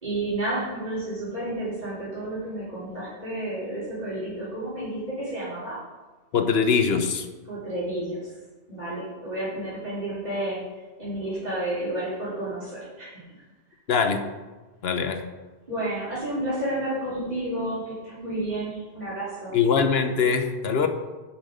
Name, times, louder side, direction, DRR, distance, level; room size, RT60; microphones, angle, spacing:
voice 1, 0.0-5.8 7.5-8.2 8.7-10.6 11.0-13.1 15.0-15.1 15.7-19.6, right 1 dB, 40° right, -11 dB, 3.8 m, -31 dB
voice 2, 6.3-7.3 13.9-14.2 14.8-15.2 19.5-20.9, left 6 dB, 70° left, 8 dB, 1.1 m, -22 dB
11.0 x 5.9 x 5.1 m, 1.2 s
omnidirectional pair, 1.1 m